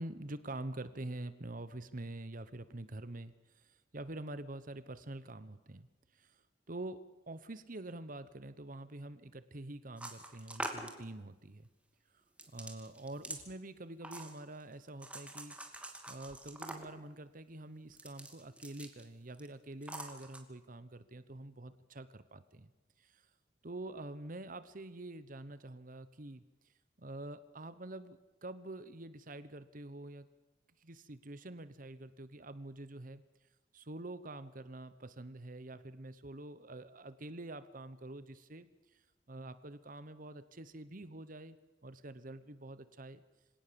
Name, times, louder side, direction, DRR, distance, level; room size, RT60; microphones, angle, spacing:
voice 1, 0.0-3.7 3.9-5.9 6.1-6.3 6.7-11.7 12.5-15.5 16.1-22.7 23.0-23.2 23.6-26.4 27.0-30.3 30.8-33.2 33.7-38.7 39.3-41.6 41.8-43.2, right 2 dB, 50° right, 13 dB, 1.1 m, -46 dB
sound 1, 10.0-11.0 12.4-13.4 14.0-14.6 15.0-17.0 17.9-19.0 19.3-19.5 19.8-20.4, right 1 dB, 5° right, 2.5 m, -45 dB
26.0 x 18.0 x 7.1 m, 1.1 s
head